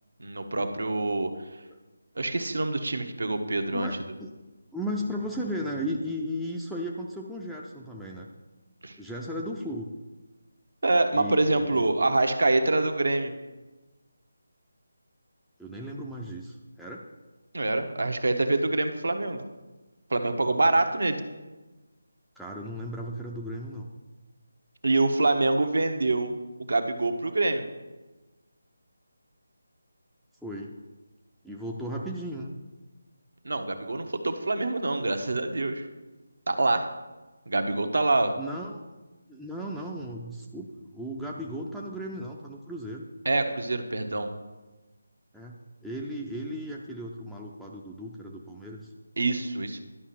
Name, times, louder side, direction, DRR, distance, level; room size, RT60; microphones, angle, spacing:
voice 1, 0.2-1.3 2.2-3.9 8.8-9.0 10.8-13.3 17.5-19.4 20.1-21.2 24.8-26.3 26.6-27.6 33.4-35.9 36.5-36.9 37.5-38.3 43.2-44.3 49.2-49.8, right 2 dB, 70° right, 6 dB, 1.0 m, -25 dB
voice 2, 3.7-4.3 4.7-8.3 9.0-9.9 11.1-11.9 15.6-17.0 22.4-23.9 30.4-30.7 31.4-32.5 38.4-38.8 39.3-43.1 45.3-48.9, equal, ahead, -4 dB, 0.5 m, -35 dB
11.5 x 5.7 x 5.8 m, 1.2 s
figure-of-eight pair, 160°, 0 cm